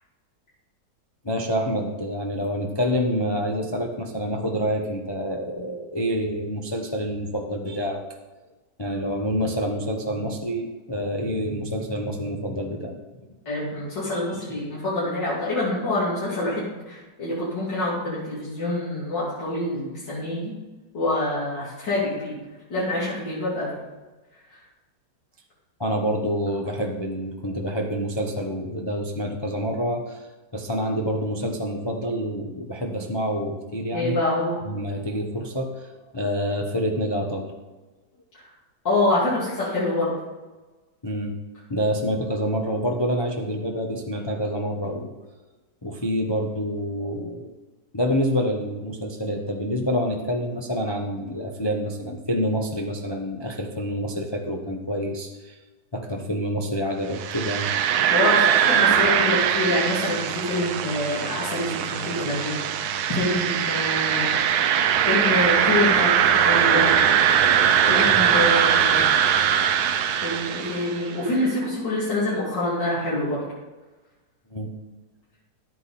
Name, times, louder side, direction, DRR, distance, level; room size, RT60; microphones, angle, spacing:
voice 1, 1.2-8.0 8.8-13.0 14.1-14.2 25.8-30.3 30.5-34.2 34.6-37.5 41.0-41.3 41.7-45.1 45.8-47.5 47.9-55.6 55.9-57.7 67.7-68.3 74.5-74.8, equal, 25° left, 1 dB, 0.6 m, -27 dB
voice 2, 13.4-20.5 20.9-22.4 22.7-23.8 24.5-24.6 33.9-34.6 38.8-40.1 58.1-64.3 65.1-67.0 67.7-69.1 69.7-69.8 70.2-73.4, left 1 dB, 75° left, -9 dB, 3.3 m, -26 dB
sound 1, 57.1-71.1, right 8 dB, 65° right, 1.1 m, -21 dB
11.5 x 8.8 x 4.2 m, 1.2 s
omnidirectional pair, 2.0 m